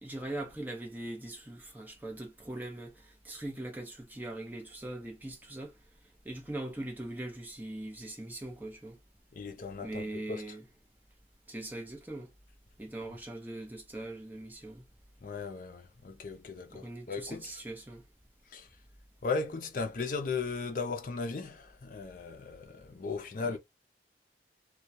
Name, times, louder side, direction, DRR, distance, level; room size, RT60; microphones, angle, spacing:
voice 1, 0.0-5.8 6.2-9.0 9.8-10.6 11.5-12.3 12.8-14.9 16.7-18.0 23.4-23.6, right 1 dB, 10° right, 0.6 m, -41 dB
voice 2, 9.3-10.4 15.2-17.5 18.5-18.7 19.2-23.6, left 4 dB, 50° left, 0.5 m, -37 dB
2.2 x 2.2 x 2.7 m
head